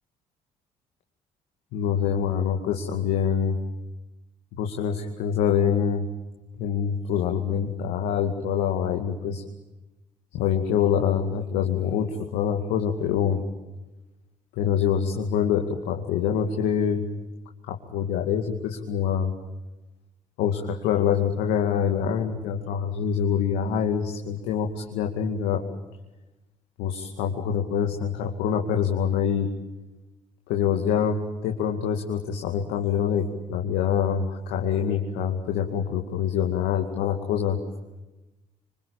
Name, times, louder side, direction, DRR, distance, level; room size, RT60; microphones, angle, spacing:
voice 1, 1.7-3.6 4.5-6.0 6.6-9.4 10.3-13.4 14.6-17.0 17.6-19.3 20.4-25.6 26.8-29.5 30.5-33.2 33.5-37.6, left 8 dB, 75° left, 3 dB, 2.4 m, -25 dB
26.0 x 25.5 x 8.8 m, 1.1 s
hypercardioid pair, 50°, 17 cm